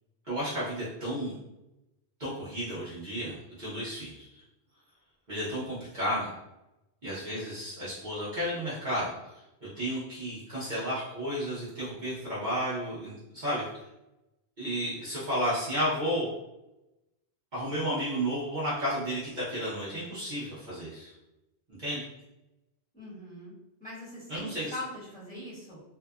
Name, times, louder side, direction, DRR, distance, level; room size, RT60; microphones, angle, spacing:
voice 1, 0.3-1.4 2.2-4.3 5.3-6.3 7.0-13.6 14.6-16.3 17.5-21.1 21.8-22.0 24.3-24.7, equal, 45° right, -10 dB, 0.9 m, -32 dB
voice 2, 22.9-23.5 23.8-25.8, left 1 dB, 10° left, -12 dB, 1.3 m, -41 dB
2.7 x 2.4 x 2.3 m, 0.93 s
omnidirectional pair, 1.1 m